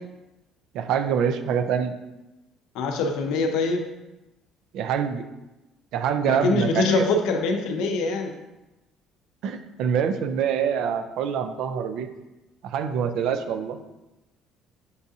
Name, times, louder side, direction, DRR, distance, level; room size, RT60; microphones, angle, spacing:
voice 1, 0.7-1.9 4.7-5.2 5.9-7.1 9.4-12.1 12.6-13.8, right 7 dB, 65° right, 8 dB, 0.4 m, -25 dB
voice 2, 2.7-3.9 6.2-8.3, left 3 dB, 80° left, 4 dB, 0.6 m, -24 dB
6.6 x 2.4 x 2.7 m, 1.0 s
cardioid pair, 165°, 0 cm